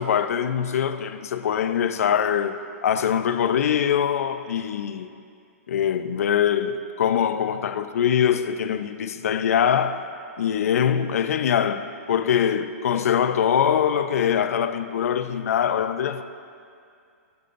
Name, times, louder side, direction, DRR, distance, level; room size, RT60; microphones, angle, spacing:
voice 1, 0.0-5.2 5.7-10.1 10.4-16.2, left 8 dB, 70° left, 0.6 m, -23 dB
19.0 x 6.9 x 2.6 m
hypercardioid pair, 155°, 8 cm